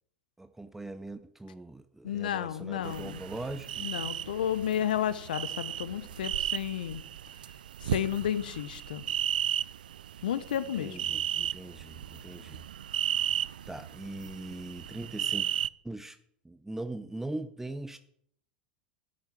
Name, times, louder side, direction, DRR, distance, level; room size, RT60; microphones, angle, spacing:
voice 1, 0.4-3.9 10.7-12.6 13.7-15.5 15.8-16.2 16.4-18.0, right 2 dB, 5° right, 11 dB, 0.6 m, -41 dB
voice 2, 2.0-3.2 3.8-7.0 7.8-9.0 10.2-11.0, left 10 dB, 80° left, 15 dB, 0.8 m, -32 dB
sound 1, 2.8-15.7, right 10 dB, 80° right, 0.4 m, -35 dB
11.0 x 7.0 x 9.0 m, 0.69 s
hypercardioid pair, 90°, 5 cm